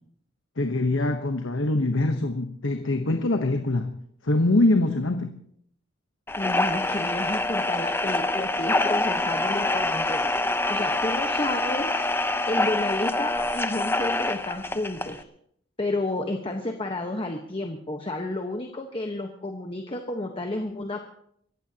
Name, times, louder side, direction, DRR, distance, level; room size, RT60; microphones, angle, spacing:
voice 1, 0.6-3.9 4.2-5.3, left 2 dB, 80° left, 5 dB, 1.1 m, -23 dB
sound 1, 6.3-15.2, left 2 dB, 10° left, 0.7 m, -26 dB
voice 2, 6.4-10.2 10.7-12.0 12.5-15.2 15.8-21.0, left 2 dB, 30° left, 3 dB, 1.2 m, -31 dB
28.0 x 15.0 x 2.9 m, 0.68 s
head